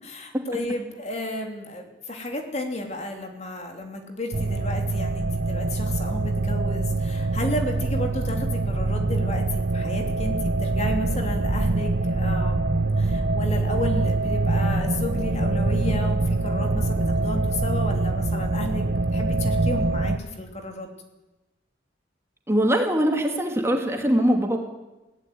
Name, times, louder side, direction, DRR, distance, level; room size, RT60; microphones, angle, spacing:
voice 1, 0.0-20.9, left 1 dB, 35° left, 4 dB, 3.0 m, -32 dB
sound 1, 4.3-20.2, right 2 dB, 60° right, 1.1 m, -24 dB
voice 2, 22.5-24.6, equal, 15° right, 3 dB, 2.3 m, -22 dB
20.5 x 16.5 x 9.4 m, 1.1 s
head